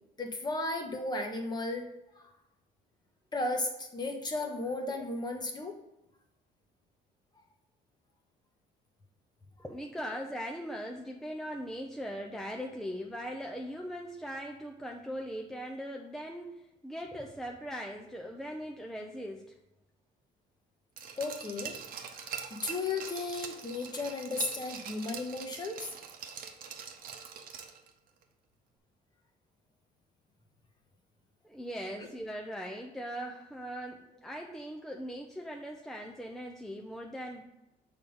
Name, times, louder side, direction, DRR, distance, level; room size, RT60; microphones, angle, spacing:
voice 1, 0.2-1.9 2.1-2.3 3.3-5.8 21.2-21.7 22.1-25.9 32.0-32.1, left 2 dB, 25° left, 4 dB, 1.1 m, -35 dB
voice 2, 9.6-19.5 31.4-37.4, equal, ahead, 1 dB, 0.6 m, -40 dB
Glass, 21.0-27.9 28.2-28.3, right 7 dB, 60° right, 0.9 m, -43 dB
6.5 x 3.5 x 5.4 m, 0.91 s
cardioid pair, 110°, 17 cm